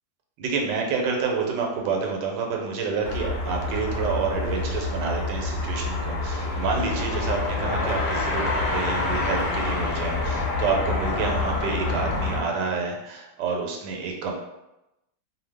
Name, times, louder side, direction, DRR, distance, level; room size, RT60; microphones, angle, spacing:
voice 1, 0.4-14.3, right 5 dB, 90° right, 1 dB, 1.3 m, -28 dB
sound 1, 3.0-12.4, left 2 dB, 60° left, 0.8 m, -27 dB
2.6 x 2.3 x 3.3 m, 0.91 s
omnidirectional pair, 1.8 m